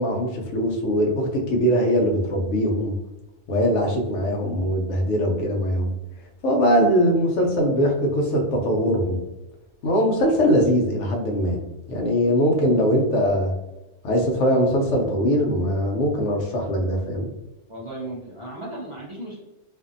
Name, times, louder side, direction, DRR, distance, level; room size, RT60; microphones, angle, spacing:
voice 1, 0.0-2.9 3.5-5.9 6.4-9.2 9.8-11.6 11.9-13.5 14.0-17.3, equal, 70° left, 1 dB, 0.9 m, -21 dB
voice 2, 17.7-19.4, right 1 dB, 50° right, -7 dB, 0.3 m, -35 dB
2.5 x 2.5 x 2.5 m, 0.98 s
omnidirectional pair, 1.4 m